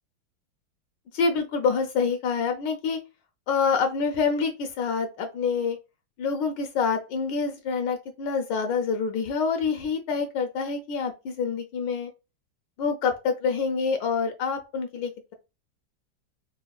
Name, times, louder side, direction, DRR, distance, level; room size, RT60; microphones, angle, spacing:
voice 1, 1.1-3.0 3.5-5.8 6.2-12.1 12.8-15.3, left 5 dB, 75° left, 5 dB, 1.2 m, -26 dB
4.9 x 2.1 x 2.3 m, 0.27 s
omnidirectional pair, 2.2 m